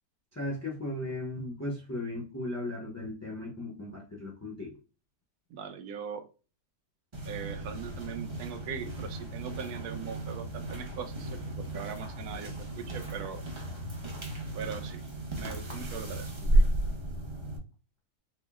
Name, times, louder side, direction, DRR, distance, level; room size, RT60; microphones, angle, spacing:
voice 1, 0.3-4.7, left 1 dB, 20° left, 0.4 m, -36 dB
voice 2, 5.5-6.2 7.3-13.4 14.5-16.7, right 7 dB, 75° right, 1.1 m, -41 dB
sound 1, 7.1-17.6, right 1 dB, 30° right, 0.5 m, -33 dB
4.4 x 2.0 x 3.4 m
omnidirectional pair, 1.7 m